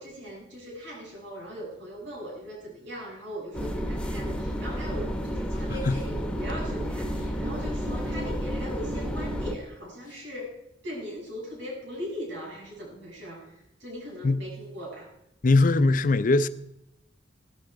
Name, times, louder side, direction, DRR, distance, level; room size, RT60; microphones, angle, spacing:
voice 1, 0.0-10.5 10.8-15.1, equal, 65° right, 7.7 m, -39 dB
sound 1, 3.5-9.5, equal, 5° left, 1.1 m, -31 dB
voice 2, 15.4-16.5, left 3 dB, 45° left, 0.6 m, -21 dB
16.0 x 13.0 x 4.7 m
head